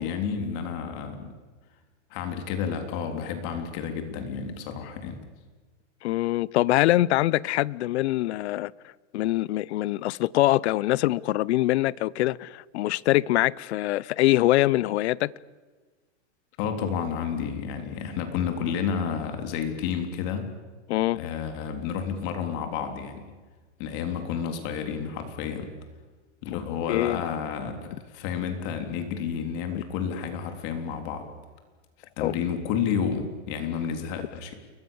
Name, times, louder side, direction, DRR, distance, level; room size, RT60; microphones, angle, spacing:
voice 1, 0.0-1.3 2.1-5.2 16.6-20.5 21.2-23.3 23.8-25.8 26.4-31.3 32.2-34.5, left 7 dB, 40° left, 3.6 m, -31 dB
voice 2, 6.0-8.7 9.1-15.3 20.9-21.2 26.9-27.2 29.7-29.8 32.2-32.3 34.2-34.3, left 16 dB, 60° left, 0.8 m, -24 dB
29.5 x 23.0 x 7.2 m
supercardioid pair, 160°, 38 cm